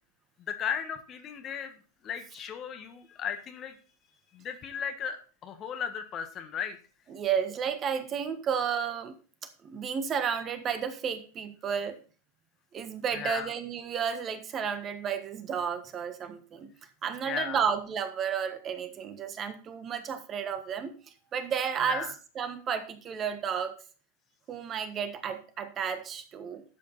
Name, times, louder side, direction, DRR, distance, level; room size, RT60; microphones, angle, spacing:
voice 1, 0.4-3.8 4.3-6.8 13.1-13.5 17.2-17.6 21.8-22.1, left 8 dB, 30° left, 8 dB, 1.5 m, -36 dB
voice 2, 7.1-9.2 9.6-12.0 12.7-16.7 17.0-20.9 21.3-22.1 22.3-23.7 24.5-26.6, right 7 dB, 25° right, 9 dB, 1.4 m, -32 dB
12.0 x 8.2 x 4.1 m, 0.38 s
figure-of-eight pair, 90°, 0 cm